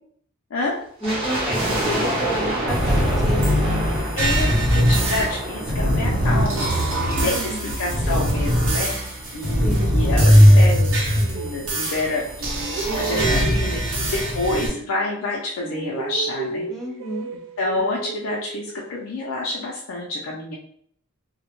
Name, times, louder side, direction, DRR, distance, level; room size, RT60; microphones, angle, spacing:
voice 1, 1.0-3.7 7.2-7.7 9.6-10.0 12.9-13.7 16.7-17.3, equal, ahead, -6 dB, 0.7 m, -31 dB
sound 1, 1.0-8.3 8.5-8.6 9.3-11.1 11.4-11.5 11.7-12.0 12.5-12.6, right 1 dB, 25° right, 0.8 m, -29 dB
sound 2, 2.7-14.7, equal, 80° right, 0.9 m, -20 dB
voice 2, 4.2-6.9 7.2-8.9 9.3-12.6 12.9-16.7 17.6-20.6, left 2 dB, 85° left, -3 dB, 0.4 m, -28 dB
sound 3, 9.3-12.1 12.4-15.3 15.6-19.1, right 5 dB, 65° right, 0.3 m, -34 dB
2.1 x 2.0 x 2.9 m, 0.62 s
head